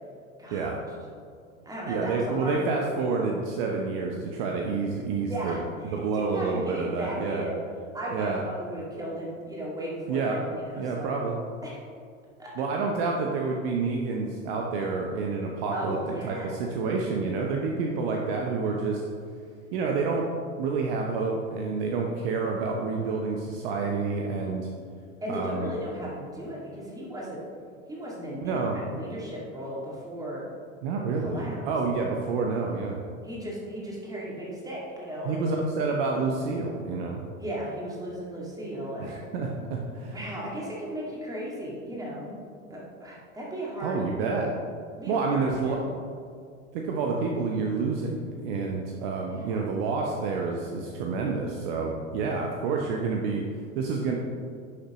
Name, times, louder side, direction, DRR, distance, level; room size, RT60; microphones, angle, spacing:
voice 1, 0.4-0.7 1.6-3.0 5.2-7.6 7.9-11.2 11.6-11.8 12.4-12.5 15.7-16.6 25.2-27.4 27.9-30.4 31.2-31.6 33.2-35.5 37.4-39.1 40.1-42.4 42.7-44.4 45.0-45.9 49.3-49.6, equal, 10° right, -4 dB, 2.1 m, -36 dB
voice 2, 1.9-5.6 5.9-7.4 8.1-8.4 10.1-10.4 10.8-11.4 12.6-19.0 19.7-20.3 20.6-24.7 25.3-25.7 28.4-28.8 30.8-33.0 35.2-37.2 39.0-40.2 43.8-44.5 45.1-45.8 46.7-53.4 53.7-54.1, right 4 dB, 45° right, 0 dB, 0.9 m, -28 dB
11.0 x 6.5 x 3.0 m, 2.3 s
figure-of-eight pair, 85°, 40 cm